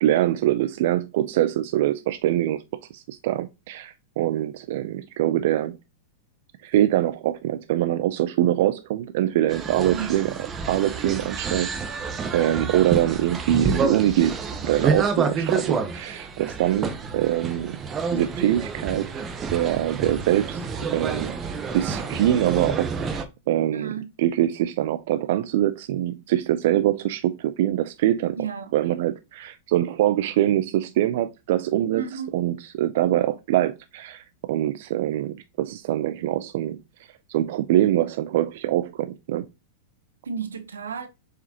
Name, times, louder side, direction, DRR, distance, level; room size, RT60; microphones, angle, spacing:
voice 1, 0.0-2.6 2.9-5.8 6.6-10.3 10.7-14.4 14.6-17.8 18.1-19.2 19.5-21.3 21.7-23.9 24.2-28.4 28.7-36.8 37.3-39.5, right 13 dB, 65° right, 0.4 m, -24 dB
sound 1, 9.5-23.2, right 4 dB, 25° right, 0.9 m, -29 dB
voice 2, 9.9-10.2 23.7-24.1 28.4-28.7 31.9-32.4 40.2-41.1, right 6 dB, 90° right, 0.9 m, -32 dB
6.7 x 4.9 x 2.9 m
hypercardioid pair, 110°, 0 cm